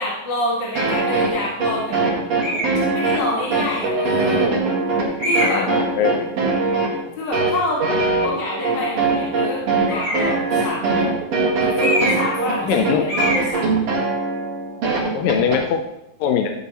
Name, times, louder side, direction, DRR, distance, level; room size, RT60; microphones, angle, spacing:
voice 1, 0.0-2.1 2.9-4.4 5.2-5.7 7.2-7.8 8.2-11.2 11.6-13.7, left 1 dB, 40° left, -5 dB, 2.0 m, -27 dB
sound 1, 0.8-15.6, right 3 dB, 50° right, 2.7 m, -21 dB
sound 2, 2.4-2.8 3.6-3.7 5.2-5.7 9.9-10.4 11.8-12.4 12.6-12.8 13.1-13.5, equal, 25° left, 4.4 m, -23 dB
voice 2, 5.4-6.3 12.6-13.1 15.1-15.8 16.2-16.5, left 7 dB, 75° left, 5 dB, 2.3 m, -21 dB
12.5 x 9.2 x 3.1 m, 0.86 s
omnidirectional pair, 4.4 m